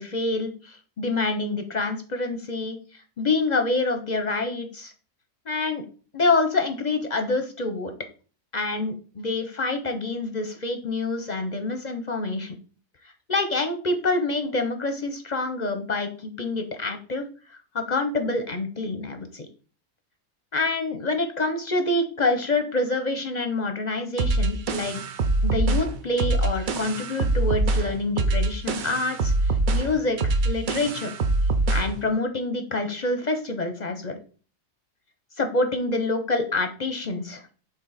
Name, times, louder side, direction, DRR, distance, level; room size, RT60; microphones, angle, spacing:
voice 1, 0.0-4.9 5.5-5.8 6.1-7.9 8.5-12.6 13.3-19.5 20.5-25.0 25.4-31.1 31.7-34.2 35.4-37.5, left 3 dB, 45° left, 7 dB, 0.6 m, -27 dB
sound 1, 24.2-32.0, right 2 dB, 55° right, 0.5 m, -24 dB
6.6 x 3.9 x 4.0 m, 0.39 s
omnidirectional pair, 1.4 m